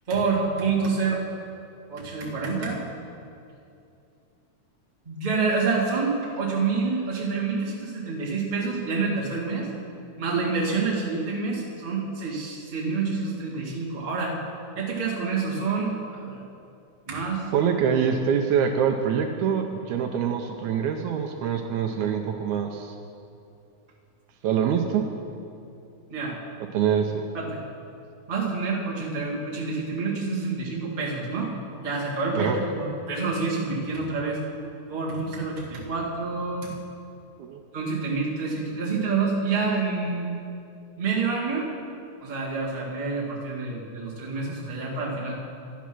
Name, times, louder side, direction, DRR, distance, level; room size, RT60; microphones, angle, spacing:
voice 1, 0.1-1.2 1.9-2.8 5.0-9.7 10.2-14.4 14.7-16.4 17.1-17.5 24.6-24.7 26.1-26.4 27.3-27.6 28.3-31.5 31.8-34.4 34.9-36.7 37.7-40.3 41.0-41.7 42.2-45.3, right 4 dB, 20° right, -5 dB, 1.3 m, -27 dB
voice 2, 17.5-23.0 24.4-25.1 26.7-27.2 32.4-32.6 37.4-37.6, right 7 dB, 80° right, 3 dB, 1.9 m, -25 dB
11.5 x 8.3 x 6.0 m, 2.6 s
omnidirectional pair, 3.6 m